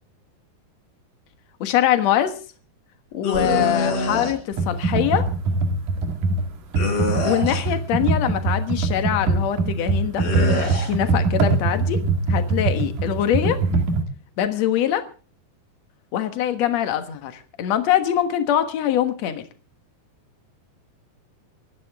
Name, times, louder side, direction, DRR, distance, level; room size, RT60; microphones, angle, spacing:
voice 1, 1.6-2.3 3.1-5.2 7.2-10.2 10.8-12.0 12.3-13.6 14.4-15.0 16.1-19.5, left 10 dB, 60° left, 8 dB, 1.8 m, -23 dB
sound 1, 3.2-4.3 6.8-7.8 10.2-10.9, left 2 dB, 40° left, 4.6 m, -25 dB
Computer keyboard, 4.5-14.0, right 3 dB, 55° right, 3.1 m, -22 dB
26.0 x 11.5 x 3.6 m, 0.37 s
omnidirectional pair, 5.0 m